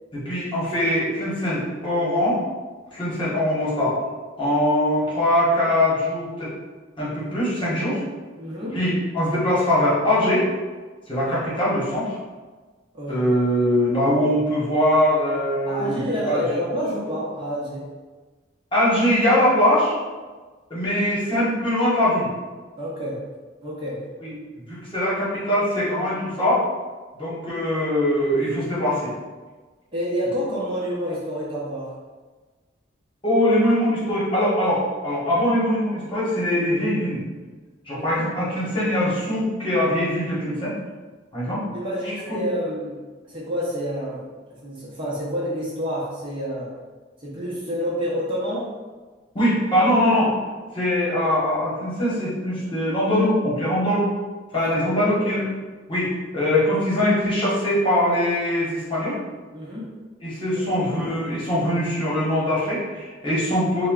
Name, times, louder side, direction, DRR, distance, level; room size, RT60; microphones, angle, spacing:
voice 1, 0.1-2.4 2.9-4.0 4.4-6.5 7.0-8.0 8.7-10.5 11.1-12.2 13.1-16.4 18.7-19.9 20.7-22.3 24.2-24.3 24.7-26.6 27.1-29.1 33.2-37.2 37.8-40.7 41.3-41.6 42.3-42.4 49.3-50.3 50.7-54.1 54.5-55.4 55.9-59.2 60.2-63.9, left 1 dB, 25° left, -9 dB, 1.2 m, -22 dB
voice 2, 8.4-8.8 12.9-13.2 15.7-17.8 22.8-23.2 23.6-24.0 29.9-31.9 37.9-38.2 41.7-43.0 43.2-44.2 44.6-46.7 47.2-48.7 54.5-55.0 59.5-59.9, equal, 25° right, -7 dB, 0.9 m, -28 dB
3.6 x 2.2 x 3.7 m, 1.3 s
head